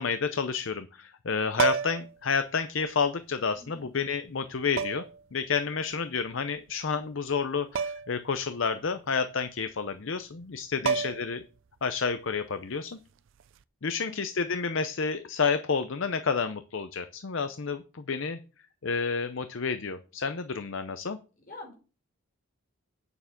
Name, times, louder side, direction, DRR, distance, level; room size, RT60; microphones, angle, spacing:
voice 1, 0.0-5.0 5.3-11.4 11.8-13.0 13.8-18.4 18.8-21.2, left 5 dB, 55° left, 10 dB, 0.6 m, -30 dB
sound 1, 1.5-2.2 3.5-3.6 4.8-5.2 7.8-8.2 8.5-8.6 10.4-10.5 10.9-11.4 13.4-13.6, right 6 dB, 55° right, 0.4 m, -29 dB
voice 2, 3.6-3.9 10.7-11.0 14.0-14.2 21.5-21.7, left 2 dB, 40° left, 0 dB, 5.2 m, -46 dB
9.1 x 7.0 x 5.8 m, 0.35 s
head